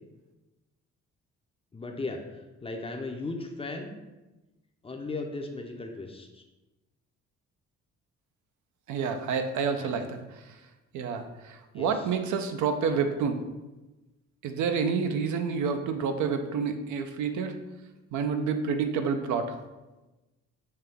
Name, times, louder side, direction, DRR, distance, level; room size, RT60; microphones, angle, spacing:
voice 1, 1.7-3.9 4.8-6.4 9.8-10.1 11.7-12.1, left 3 dB, 20° left, 3 dB, 0.5 m, -37 dB
voice 2, 8.9-10.6 10.9-13.4 14.4-17.5 18.1-19.6, right 5 dB, 75° right, 7 dB, 0.5 m, -29 dB
5.5 x 2.3 x 3.4 m, 1.1 s
cardioid pair, 90°, 30 cm